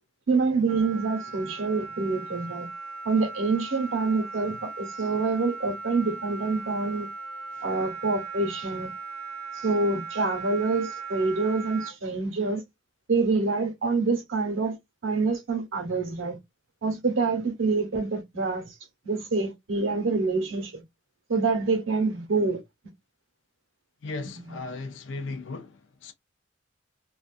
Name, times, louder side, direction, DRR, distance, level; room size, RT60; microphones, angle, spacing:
voice 1, 0.3-2.7 3.0-7.1 7.6-8.9 9.5-12.6 13.1-14.8 15.0-16.4 16.8-18.7 19.0-20.8 21.3-22.6 24.3-24.6, right 3 dB, 90° right, 1.0 m, -26 dB
Wind instrument woodwind instrument, 0.7-11.9, right 4 dB, 40° right, 0.5 m, -38 dB
voice 2, 24.0-26.1, left 3 dB, 70° left, 0.5 m, -37 dB
2.5 x 2.4 x 2.4 m
head